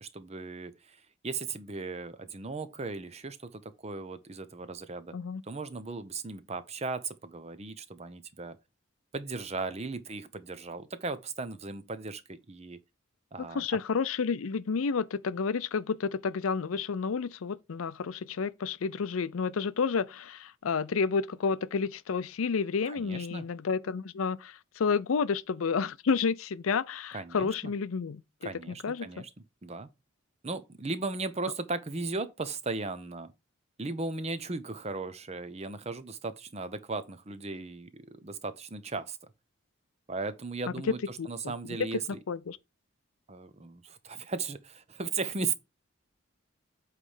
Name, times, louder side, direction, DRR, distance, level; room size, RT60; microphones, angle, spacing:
voice 1, 0.0-5.1 5.4-8.6 9.1-12.8 13.3-13.7 22.8-23.5 27.1-27.7 28.4-29.3 29.6-29.9 30.4-33.3 33.8-39.2 40.1-42.2 43.3-45.6, right 3 dB, 30° right, 0.7 m, -37 dB
voice 2, 13.4-28.2 28.8-29.1 41.2-41.5 41.9-42.0 42.3-42.6, left 5 dB, 90° left, 0.5 m, -30 dB
8.2 x 3.3 x 5.6 m
head